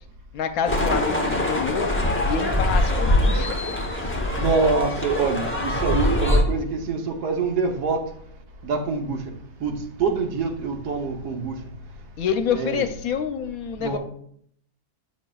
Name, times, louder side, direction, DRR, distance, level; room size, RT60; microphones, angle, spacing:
voice 1, 0.3-1.9 2.2-3.6 12.2-14.0, left 7 dB, 70° left, 8 dB, 1.0 m, -27 dB
sound 1, 0.7-6.4, left 1 dB, 15° left, 0.4 m, -23 dB
voice 2, 4.4-8.1 8.6-9.3 9.6-11.6 12.5-12.9 13.8-14.0, right 4 dB, 80° right, 3 dB, 1.4 m, -25 dB
8.3 x 6.3 x 2.3 m, 0.67 s
omnidirectional pair, 1.7 m